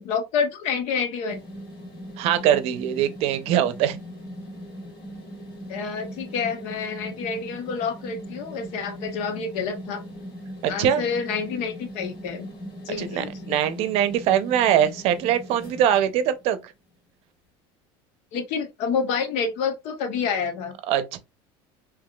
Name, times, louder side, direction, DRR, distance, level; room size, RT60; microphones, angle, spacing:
voice 1, 0.0-1.4 5.7-10.0 10.7-12.5 12.8-13.5 18.3-20.8, left 5 dB, 65° left, 0.9 m, -28 dB
sound 1, 1.3-16.6, equal, 45° left, 1.9 m, -40 dB
voice 2, 2.2-4.0 10.6-11.0 13.0-16.6 20.9-21.2, right 10 dB, 55° right, 0.6 m, -22 dB
3.5 x 3.0 x 2.3 m
supercardioid pair, 125°, 12 cm